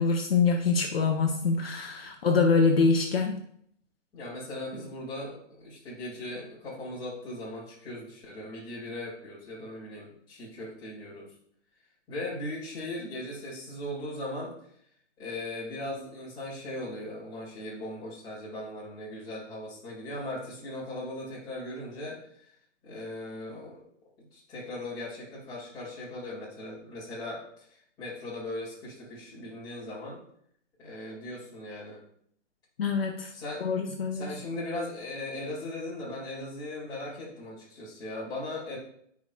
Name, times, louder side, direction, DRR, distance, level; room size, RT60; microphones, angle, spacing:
voice 1, 0.0-3.4 32.8-33.3 33.6-34.3, left 4 dB, 50° left, 2 dB, 0.9 m, -25 dB
voice 2, 4.1-5.3 5.6-11.3 12.1-14.5 15.2-22.2 22.8-23.8 24.3-27.7 28.0-30.2 30.8-32.0 33.3-33.7 34.1-38.8, left 1 dB, 10° left, -7 dB, 1.9 m, -38 dB
14.0 x 4.8 x 2.2 m, 0.66 s
hypercardioid pair, 165°, 37 cm